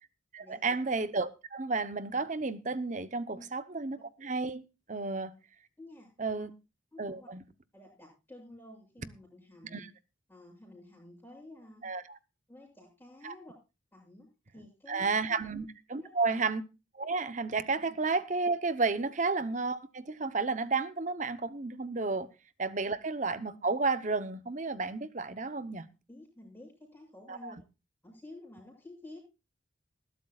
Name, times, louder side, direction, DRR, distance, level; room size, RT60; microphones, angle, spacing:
voice 1, 0.3-4.6 4.9-5.3 6.2-6.5 7.0-7.4 9.7-9.9 11.8-12.2 13.2-13.3 14.9-16.6 16.9-22.3 22.6-25.9 27.3-27.5, right 3 dB, 40° right, 0.8 m, -32 dB
voice 2, 5.8-6.1 6.4-6.5 6.9-7.3 7.7-9.9 10.3-11.8 12.5-13.5 13.9-14.3 14.5-15.4 15.9-16.4 19.0-19.1 26.1-27.6 28.0-29.2, left 1 dB, 10° left, 7.7 m, -51 dB
20.5 x 12.0 x 2.4 m
head